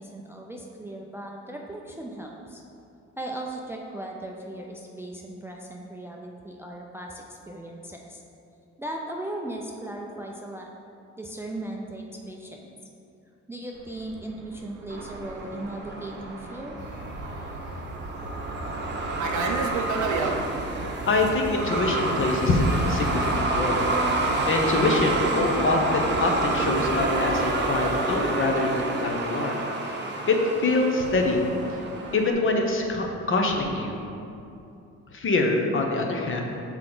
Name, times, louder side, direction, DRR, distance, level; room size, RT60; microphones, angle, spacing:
voice 1, 0.0-2.6 3.2-8.2 8.8-10.7 11.2-12.7 13.5-16.8, right 1 dB, 10° right, 0 dB, 0.4 m, -37 dB
Fixed-wing aircraft airplane, 13.9-20.4, right 5 dB, 75° right, 0.6 m, -33 dB
Truck, 14.9-32.3, right 2 dB, 35° right, 0.8 m, -29 dB
sound 1, 16.8-28.1, right 1 dB, 75° left, 1.0 m, -39 dB
voice 2, 21.1-23.8 24.4-29.6 30.3-31.4 31.7-31.8 32.1-34.0 35.1-36.4, left 2 dB, 45° left, 2 dB, 0.8 m, -24 dB
5.8 x 4.5 x 3.9 m, 2.7 s
cardioid pair, 90°, 30 cm